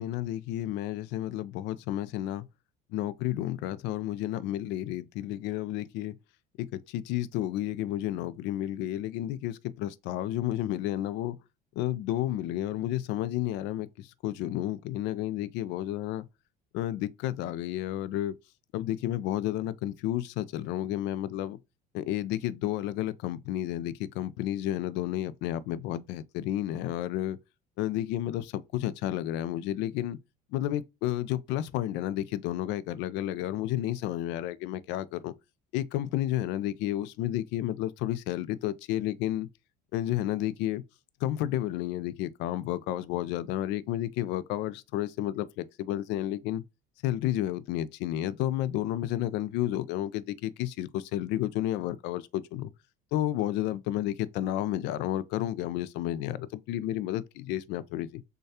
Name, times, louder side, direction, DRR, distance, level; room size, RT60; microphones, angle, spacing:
voice 1, 0.0-2.5 2.9-6.2 6.6-11.4 11.8-16.3 16.7-18.3 18.7-21.6 21.9-27.4 27.8-30.2 30.5-35.3 35.7-39.5 39.9-40.8 41.2-46.6 47.0-52.7 53.1-58.2, left 13 dB, 65° left, 0.4 m, -31 dB
6.4 x 2.3 x 2.7 m
cardioid pair, 155°, 19 cm